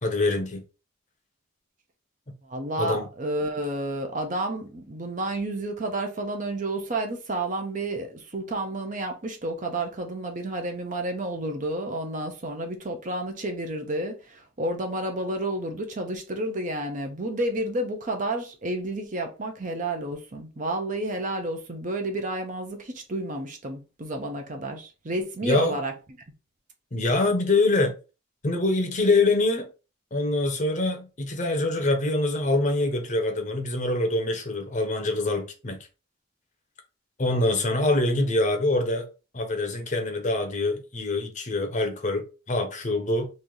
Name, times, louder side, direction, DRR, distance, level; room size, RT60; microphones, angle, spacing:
voice 1, 0.0-0.6 2.8-3.1 25.4-25.8 26.9-27.9 28.4-29.7 30.1-35.8 37.2-39.1 39.3-43.3, left 2 dB, 35° left, 0.7 m, -25 dB
voice 2, 2.4-25.9, right 1 dB, 40° right, 0.7 m, -30 dB
3.1 x 2.7 x 3.8 m
head